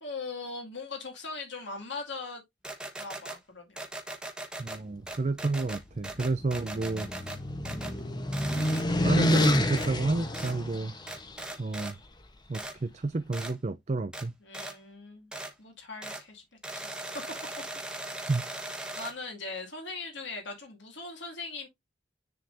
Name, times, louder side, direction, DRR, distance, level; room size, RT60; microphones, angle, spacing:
voice 1, 0.0-2.4 3.0-3.8 14.4-15.3 15.6-16.4 16.7-17.1 18.2-18.6 18.9-21.7, left 3 dB, 75° left, 2.2 m, -40 dB
sound 1, 2.6-3.4 3.8-4.8 5.1-7.4 7.6-8.0 8.3-8.8 9.8-9.9 10.3-10.5 11.1-11.9 12.5-12.7 13.3-13.5 14.1-14.2 14.5-14.7 15.3-15.5 16.0-16.2 16.6-19.1, right 1 dB, 5° right, 1.1 m, -39 dB
voice 2, 4.6-7.1 9.0-10.9 11.6-12.0 12.5-14.3 18.3-18.4, right 3 dB, 35° right, 0.5 m, -30 dB
sound 2, 6.1-11.3, left 1 dB, 25° left, 0.9 m, -28 dB
10.0 x 3.7 x 2.6 m
head